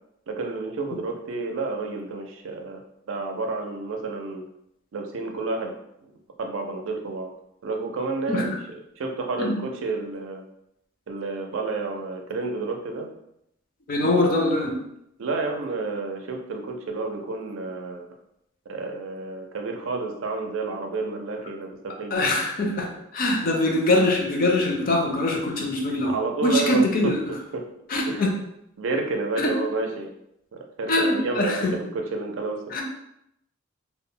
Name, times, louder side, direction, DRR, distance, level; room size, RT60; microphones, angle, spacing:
voice 1, 0.3-4.4 4.9-5.7 6.0-6.1 6.4-7.3 7.6-10.4 11.1-13.1 15.2-18.1 18.7-22.3 26.0-27.7 28.1-28.3 28.8-30.1 30.5-32.8, right 3 dB, 80° right, 3 dB, 0.4 m, -30 dB
voice 2, 13.9-14.8 22.1-26.1 26.4-27.3 27.9-28.4 29.4-29.5 30.9-31.7 32.7-32.8, left 1 dB, 45° left, 0 dB, 0.5 m, -23 dB
2.1 x 2.1 x 3.7 m, 0.79 s
head